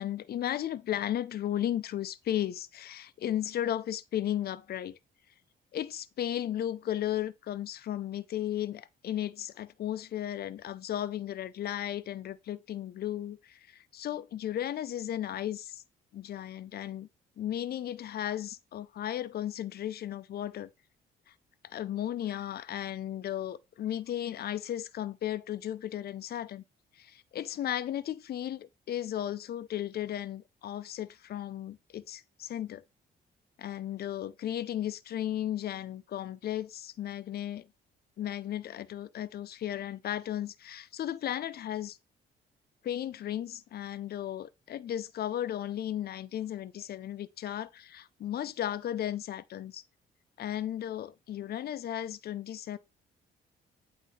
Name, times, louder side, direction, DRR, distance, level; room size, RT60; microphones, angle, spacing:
voice 1, 0.0-5.0 5.7-15.8 16.1-17.1 17.4-20.7 21.6-26.6 27.0-32.8 33.6-37.7 38.2-42.0 42.8-49.8 50.4-52.8, left 11 dB, 50° left, 0.5 m, -35 dB
8.2 x 2.8 x 4.1 m
cardioid pair, 90°, 20 cm